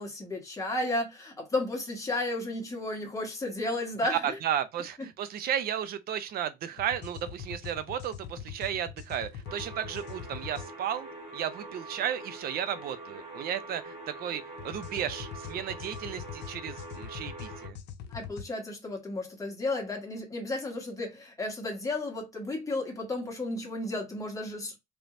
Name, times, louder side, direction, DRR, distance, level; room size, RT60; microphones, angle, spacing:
voice 1, 0.0-4.4 18.1-24.8, left 2 dB, 20° left, 1.4 m, -33 dB
voice 2, 4.1-17.8, right 10 dB, 65° right, 0.6 m, -34 dB
sound 1, 6.8-10.7 14.6-18.5, left 8 dB, 85° left, 0.6 m, -43 dB
sound 2, 9.5-17.7, right 2 dB, 40° right, 1.4 m, -44 dB
3.2 x 3.0 x 2.6 m
cardioid pair, 110°, 17 cm